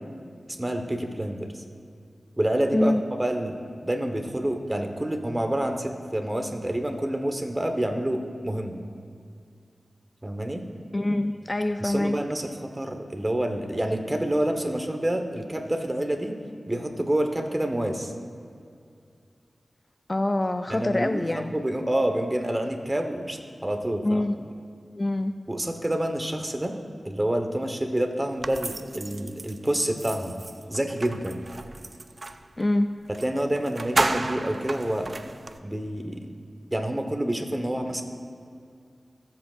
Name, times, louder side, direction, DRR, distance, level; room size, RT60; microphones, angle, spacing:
voice 1, 0.5-1.5 2.4-2.9 3.2-8.8 10.2-10.6 11.8-16.3 16.7-18.1 20.7-24.2 25.5-26.8 27.0-30.4 30.7-31.4 33.1-35.1 35.6-36.3 36.7-38.0, right 1 dB, 20° right, 5 dB, 1.1 m, -28 dB
voice 2, 10.9-12.2 20.1-21.5 24.0-24.4 24.9-25.4 32.6-32.9, left 1 dB, 35° left, 8 dB, 0.3 m, -25 dB
sound 1, 28.4-32.5 33.1-33.3 33.6-35.6, right 2 dB, 50° right, 0.4 m, -32 dB
20.0 x 7.7 x 2.5 m, 2.3 s
cardioid pair, 50°, 0 cm